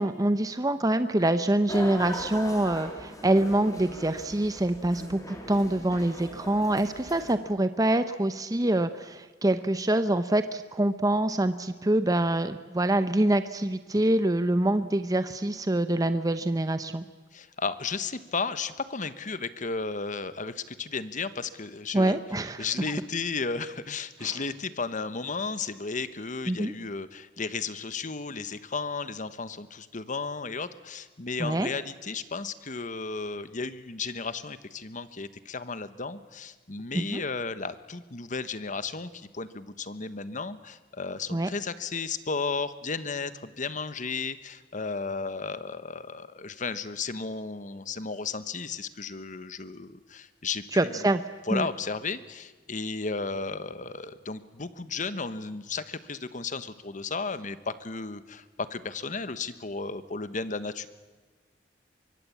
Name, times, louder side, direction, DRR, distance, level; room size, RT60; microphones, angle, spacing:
voice 1, 0.0-17.0 21.9-22.7 24.2-24.3 26.5-26.7 31.4-31.7 36.9-37.2 41.3-41.5 50.7-51.2 51.5-51.7, right 1 dB, 20° right, 10 dB, 0.8 m, -25 dB
sound 1, 1.7-7.3, left 1 dB, 20° left, 3.5 m, -40 dB
voice 2, 17.3-22.2 22.6-51.1 51.5-60.9, left 4 dB, 45° left, 13 dB, 1.2 m, -34 dB
24.0 x 23.5 x 8.4 m, 1.3 s
head